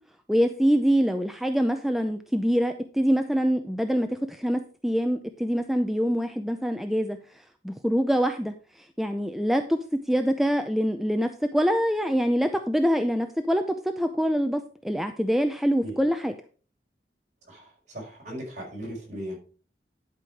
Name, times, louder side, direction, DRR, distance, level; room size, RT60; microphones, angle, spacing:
voice 1, 0.3-7.2 7.6-9.8 10.1-16.3, equal, ahead, 6 dB, 0.5 m, -25 dB
voice 2, 17.5-19.4, equal, 40° right, -2 dB, 5.1 m, -37 dB
11.0 x 5.5 x 4.6 m, 0.38 s
head